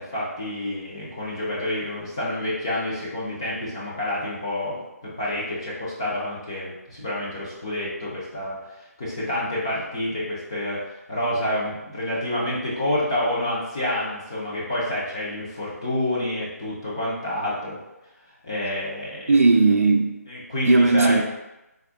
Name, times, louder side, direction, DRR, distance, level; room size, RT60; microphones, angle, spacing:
voice 1, 0.0-8.6 9.0-10.8 11.1-17.8 18.4-19.4 20.3-21.2, left 1 dB, 15° left, -6 dB, 0.5 m, -28 dB
voice 2, 19.3-20.1 20.6-21.2, right 3 dB, 55° right, 3 dB, 0.4 m, -17 dB
3.5 x 2.1 x 3.4 m, 0.94 s
hypercardioid pair, 175°, 9 cm